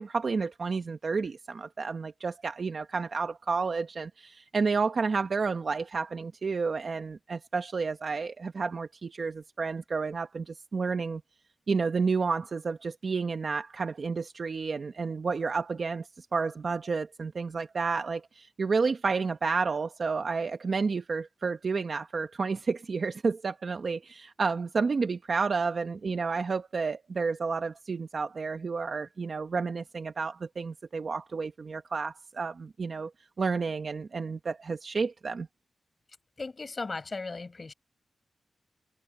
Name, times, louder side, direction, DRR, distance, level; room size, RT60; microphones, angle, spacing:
voice 1, 0.0-11.2 11.7-33.1 33.4-35.5, right 4 dB, 50° right, 1.0 m, -31 dB
voice 2, 36.4-37.7, left 3 dB, 35° left, 5.8 m, -36 dB
wide cardioid pair, 110°, 0 cm